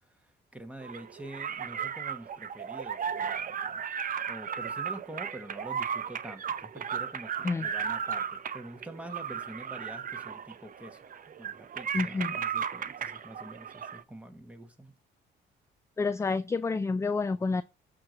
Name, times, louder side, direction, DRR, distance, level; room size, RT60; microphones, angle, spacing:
voice 1, 0.2-3.8 4.3-11.0 11.4-14.9, right 1 dB, 5° right, 1.4 m, -46 dB
sound 1, 0.8-14.0, right 7 dB, 45° right, 0.6 m, -35 dB
voice 2, 11.9-12.4 16.0-17.6, left 4 dB, 15° left, 0.3 m, -29 dB
8.6 x 3.0 x 6.3 m
cardioid pair, 90°, 20 cm